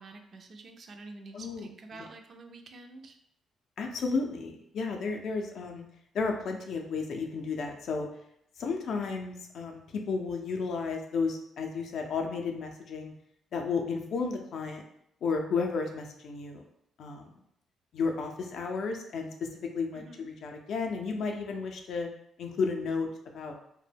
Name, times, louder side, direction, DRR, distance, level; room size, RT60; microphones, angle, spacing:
voice 1, 0.0-3.2 19.9-20.3, right 3 dB, 50° right, 5 dB, 0.3 m, -48 dB
voice 2, 1.3-1.7 3.8-5.9 6.1-8.1 8.6-13.1 13.5-14.8 15.2-16.6 17.0-17.3 17.9-22.1 22.4-23.1 23.3-23.5, left 4 dB, 65° left, 3 dB, 0.4 m, -33 dB
2.1 x 2.1 x 3.3 m, 0.74 s
cardioid pair, 90°, 0 cm